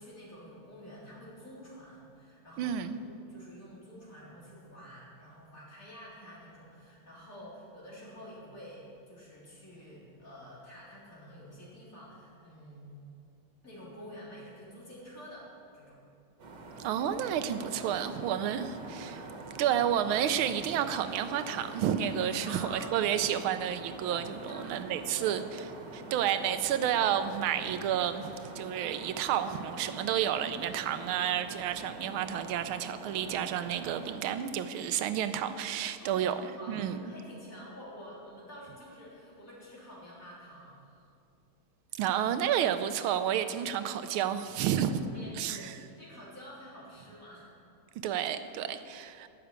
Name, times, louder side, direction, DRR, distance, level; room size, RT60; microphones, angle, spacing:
voice 1, 0.0-13.0 13.6-16.0 17.9-18.3 22.4-22.9 24.5-25.3 36.0-40.8 43.7-43.8 44.7-47.5, equal, 40° left, -7 dB, 4.1 m, -49 dB
voice 2, 2.6-3.0 16.8-19.3 19.6-25.4 25.9-36.3 36.7-37.0 42.0-45.0 45.4-45.8 48.0-49.3, right 9 dB, 90° right, 10 dB, 1.5 m, -30 dB
sound 1, 16.4-34.2, right 2 dB, 60° right, 2.1 m, -45 dB
12.0 x 7.0 x 8.8 m, 2.5 s
omnidirectional pair, 2.2 m